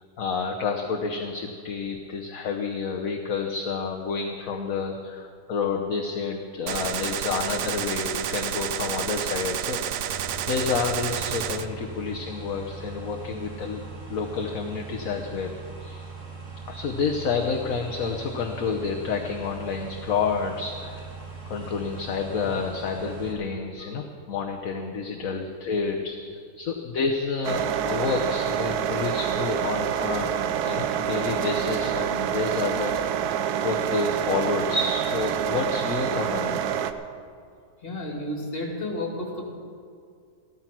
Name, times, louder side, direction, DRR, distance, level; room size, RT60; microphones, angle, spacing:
voice 1, 0.2-10.1 10.5-13.8 14.1-16.0 16.7-21.1 21.5-33.3 33.6-36.6, left 5 dB, 65° left, 2 dB, 1.3 m, -29 dB
Gunshot gunfire, 6.7-11.7, right 10 dB, 70° right, 0.9 m, -30 dB
sound 1, 10.1-23.3, right 4 dB, 55° right, 2.3 m, -40 dB
sound 2, 27.4-36.9, right 9 dB, 85° right, 1.2 m, -27 dB
voice 2, 37.8-39.4, left 1 dB, 40° left, 0 dB, 2.7 m, -31 dB
14.5 x 13.0 x 6.0 m, 2.3 s
omnidirectional pair, 1.6 m